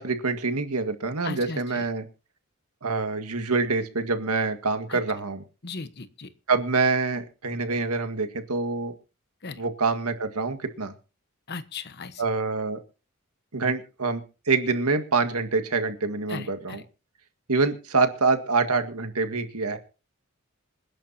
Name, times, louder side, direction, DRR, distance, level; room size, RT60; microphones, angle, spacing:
voice 1, 0.0-2.1 2.8-5.4 6.5-8.9 9.5-10.9 12.2-12.8 13.5-14.2 14.5-16.8 17.5-19.8, right 4 dB, 85° right, 8 dB, 1.9 m, -26 dB
voice 2, 1.2-1.9 4.9-5.0 5.6-6.3 9.4-9.6 11.5-12.2 16.3-16.8, left 4 dB, 50° left, 12 dB, 1.2 m, -37 dB
26.5 x 11.0 x 2.8 m, 0.33 s
head